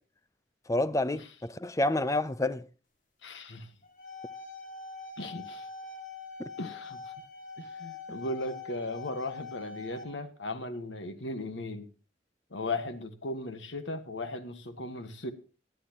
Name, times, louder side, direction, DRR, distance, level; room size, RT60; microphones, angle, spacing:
voice 1, 0.7-2.6 6.4-6.5, left 2 dB, 15° left, 0.6 m, -29 dB
voice 2, 3.2-3.7 5.2-5.7 6.6-7.1 7.6-11.9 12.5-15.3, left 2 dB, 85° left, 1.6 m, -37 dB
sound 1, 3.8-10.0, left 4 dB, 45° left, 2.3 m, -44 dB
19.0 x 11.0 x 3.0 m
head